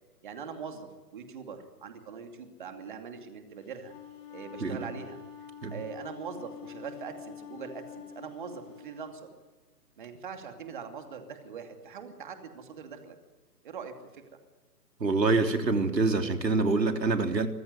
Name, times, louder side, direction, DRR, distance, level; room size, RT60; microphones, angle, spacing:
voice 1, 0.2-3.9 4.3-5.2 5.7-9.3 10.0-13.1 13.6-14.2, right 6 dB, 30° right, 5 dB, 2.6 m, -42 dB
Wind instrument woodwind instrument, 3.6-9.1, left 9 dB, 10° left, 3.3 m, -46 dB
voice 2, 15.0-17.5, right 3 dB, 90° right, 5 dB, 3.6 m, -25 dB
25.0 x 20.5 x 9.5 m, 1.2 s
hypercardioid pair, 165°, 49 cm